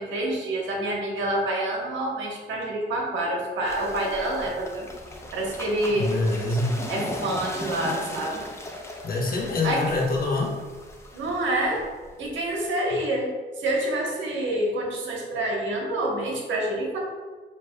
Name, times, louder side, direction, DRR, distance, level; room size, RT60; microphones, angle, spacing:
voice 1, 0.0-4.9 5.3-6.1 6.9-8.4 9.6-9.9 11.1-11.8 12.2-13.3 13.6-17.0, right 1 dB, 70° right, -1 dB, 1.2 m, -27 dB
sound 1, 3.6-12.6, left 1 dB, 15° left, 0.6 m, -38 dB
voice 2, 5.9-6.7 9.0-10.6, left 2 dB, 50° left, -2 dB, 1.1 m, -25 dB
6.4 x 3.0 x 2.3 m, 1.4 s
cardioid pair, 90°, 20 cm